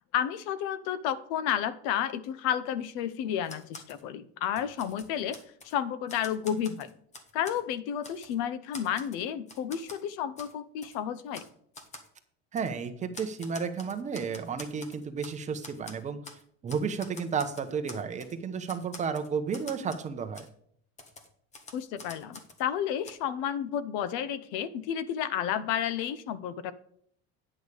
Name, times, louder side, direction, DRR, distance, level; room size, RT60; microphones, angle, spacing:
voice 1, 0.1-5.4 5.6-6.9 7.3-11.4 21.7-26.7, left 9 dB, 70° left, 15 dB, 0.9 m, -31 dB
Typewriter, 3.4-4.0 4.4-5.7 6.1-7.6 8.0-8.4 8.7-10.0 10.4-10.5 10.8-11.0 11.3-11.5 11.7-12.1 12.6-12.7 13.1-15.4 15.6-16.4 16.7-18.3 18.7-20.1 20.3-20.5 21.0-22.6 23.0-23.1, left 2 dB, 20° left, 1.4 m, -47 dB
voice 2, 12.5-20.5, right 6 dB, 25° right, 8 dB, 1.0 m, -33 dB
9.9 x 6.4 x 4.9 m, 0.64 s
cardioid pair, 160°, 31 cm